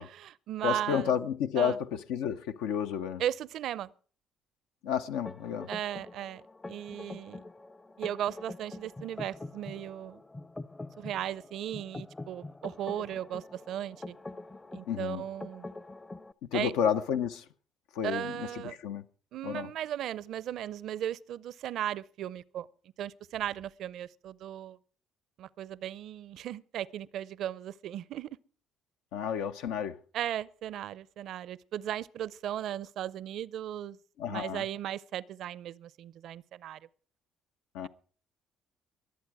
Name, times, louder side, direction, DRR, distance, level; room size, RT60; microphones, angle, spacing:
voice 1, 0.0-1.1 1.6-1.8 3.2-3.9 5.7-6.4 6.7-7.4 8.0-10.2 11.0-14.2 14.7-15.7 16.5-16.7 18.0-18.8 19.3-22.7 23.0-24.8 25.4-28.3 30.1-34.0 34.3-36.8, right 11 dB, 70° right, 0.5 m, -36 dB
voice 2, 0.6-3.2 4.8-5.7 14.9-15.2 16.5-17.4 17.9-19.0 19.4-19.7 29.1-30.0 34.2-34.6 37.7-37.9, left 8 dB, 85° left, 0.7 m, -31 dB
sound 1, 5.2-16.3, left 2 dB, 20° left, 0.6 m, -45 dB
22.5 x 8.0 x 4.8 m
supercardioid pair, 80°, 0 cm